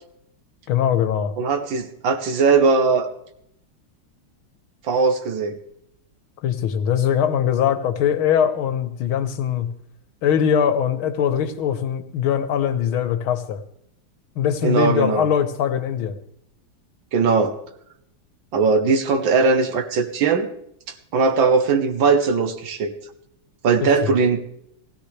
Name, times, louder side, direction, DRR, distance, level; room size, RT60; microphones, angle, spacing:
voice 1, 0.7-1.3 6.4-9.7 10.2-13.6 14.4-16.2 23.8-24.1, left 8 dB, 80° left, 10 dB, 1.8 m, -21 dB
voice 2, 1.4-3.1 4.8-5.6 14.6-15.3 17.1-17.5 18.5-20.5 21.1-22.9 23.6-24.4, right 4 dB, 70° right, 8 dB, 1.7 m, -19 dB
16.5 x 16.5 x 3.3 m, 0.73 s
omnidirectional pair, 2.3 m